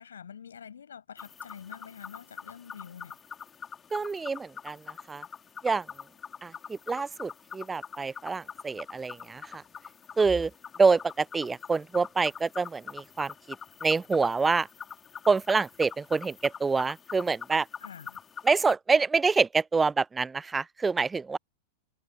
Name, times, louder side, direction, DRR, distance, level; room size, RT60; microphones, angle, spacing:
voice 1, 0.0-3.2 17.8-18.2, left 7 dB, 70° left, 7.6 m, -46 dB
sound 1, 1.2-18.7, left 7 dB, 20° left, 4.4 m, -44 dB
voice 2, 3.9-5.2 5.6-5.9 6.4-9.6 10.2-10.5 10.8-13.3 13.8-14.7 15.3-17.7 18.4-21.4, right 4 dB, 15° right, 0.4 m, -26 dB
figure-of-eight pair, 95°, 0 cm